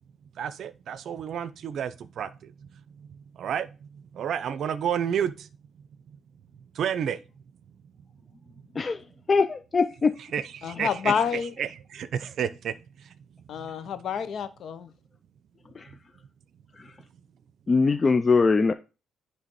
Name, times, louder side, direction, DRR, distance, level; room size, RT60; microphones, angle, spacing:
voice 1, 0.4-5.5 6.1-6.2 6.7-7.2 10.3-11.1 11.6-13.1 13.6-13.7, right 8 dB, 65° right, 0.6 m, -31 dB
voice 2, 9.3-10.1 15.8-15.9 17.7-18.7, left 4 dB, 30° left, 0.4 m, -21 dB
voice 3, 10.6-11.5 13.5-14.9, left 7 dB, 65° left, 0.8 m, -28 dB
9.8 x 3.4 x 4.2 m
cardioid pair, 90°, 0 cm